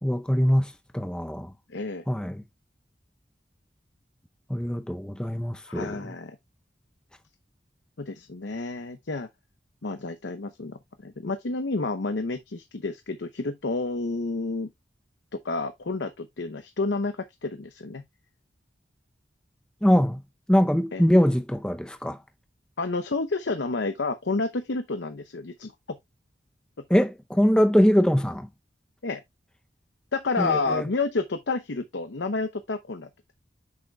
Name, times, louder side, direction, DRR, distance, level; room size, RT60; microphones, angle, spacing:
voice 1, 0.0-1.5 2.1-2.4 4.5-6.1 19.8-20.2 20.5-22.2 26.9-28.5 30.4-30.8, equal, 5° left, 0.5 m, -23 dB
voice 2, 1.7-2.0 5.7-6.4 8.0-9.3 9.8-14.7 15.3-18.0 20.9-21.0 22.8-26.0 29.0-29.2 30.1-33.1, left 3 dB, 80° left, 0.8 m, -30 dB
8.2 x 6.5 x 2.2 m
head